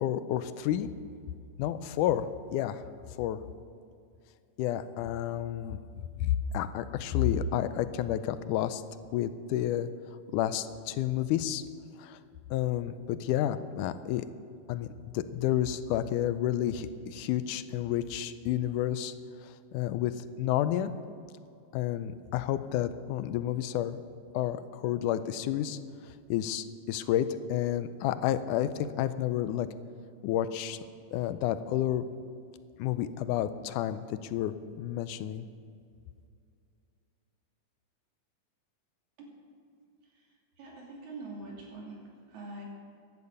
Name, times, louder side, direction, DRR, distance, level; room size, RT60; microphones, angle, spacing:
voice 1, 0.0-0.9 1.6-2.8 3.2-3.4 4.6-5.8 6.2-8.8 9.1-9.9 10.3-11.6 12.0-12.2 12.5-14.3 14.7-19.1 19.4-20.9 21.7-24.0 24.3-25.8 26.3-29.7 30.2-30.8 31.1-32.1 32.8-35.5, left 11 dB, 85° left, 12 dB, 2.1 m, -30 dB
voice 2, 40.6-42.0 42.3-42.6, right 2 dB, 65° right, -2 dB, 4.1 m, -43 dB
15.0 x 11.0 x 5.4 m, 2.4 s
omnidirectional pair, 3.6 m